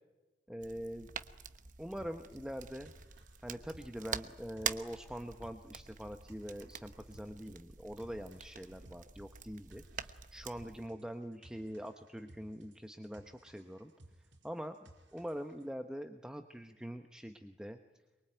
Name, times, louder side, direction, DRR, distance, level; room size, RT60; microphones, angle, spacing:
voice 1, 0.5-1.1 1.8-2.9 3.4-13.9 14.4-17.8, equal, 5° right, 6 dB, 1.0 m, -44 dB
sound 1, 0.6-10.9, right 7 dB, 45° right, 1.0 m, -46 dB
sound 2, 2.0-15.7, right 1 dB, 80° right, 4.8 m, -61 dB
23.5 x 23.5 x 9.1 m, 1.1 s
head